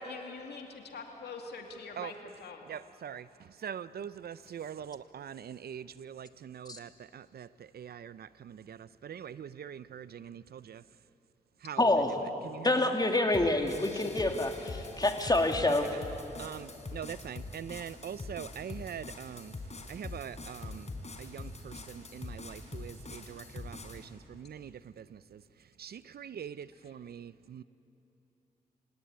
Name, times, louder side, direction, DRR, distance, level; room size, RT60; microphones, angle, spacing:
voice 1, 0.0-2.7 25.9-26.0 26.8-26.9, left 3 dB, 85° left, 3 dB, 2.5 m, -44 dB
voice 2, 2.7-3.2 3.6-7.5 7.7-8.8 9.1-10.8 11.6-11.8 12.5-12.7 15.6-15.7 16.4-19.5 19.9-20.8 21.2-24.0 24.3-24.7 25.8-27.6, right 8 dB, 70° right, 17 dB, 0.6 m, -43 dB
voice 3, 11.8-12.1 12.6-15.9, left 2 dB, 25° left, 4 dB, 2.7 m, -27 dB
sound 1, 13.3-24.1, left 3 dB, 45° left, 4.0 m, -44 dB
27.5 x 17.5 x 9.6 m, 2.9 s
cardioid pair, 55°, 17 cm